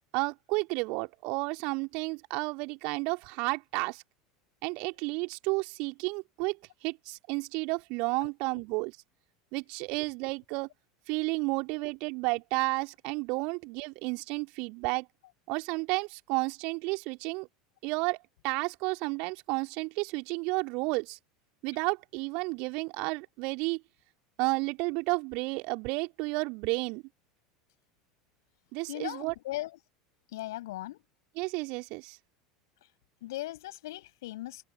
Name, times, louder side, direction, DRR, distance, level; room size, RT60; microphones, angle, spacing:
voice 1, 0.1-4.0 4.6-9.0 9.5-10.7 11.1-15.1 15.5-17.5 17.8-18.2 18.4-21.2 21.6-23.8 24.4-27.0 28.7-29.3 31.4-32.2, right 28 dB, 50° right, 2.5 m, -32 dB
voice 2, 8.2-8.6 28.9-29.7 30.3-31.0 33.2-34.6, left 16 dB, 60° left, 6.1 m, -38 dB
figure-of-eight pair, 75°, 2 cm